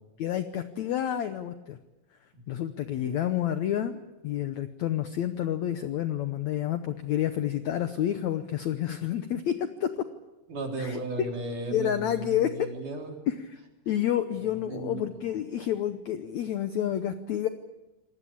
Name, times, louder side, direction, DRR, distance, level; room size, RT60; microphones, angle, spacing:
voice 1, 0.2-1.8 2.5-9.9 10.8-11.3 11.7-12.7 13.3-13.6 13.9-17.5, left 11 dB, 75° left, 9 dB, 1.7 m, -29 dB
voice 2, 10.5-13.2 14.6-15.0, right 2 dB, 55° right, 2 dB, 5.0 m, -35 dB
26.0 x 19.0 x 8.6 m, 1.1 s
omnidirectional pair, 4.3 m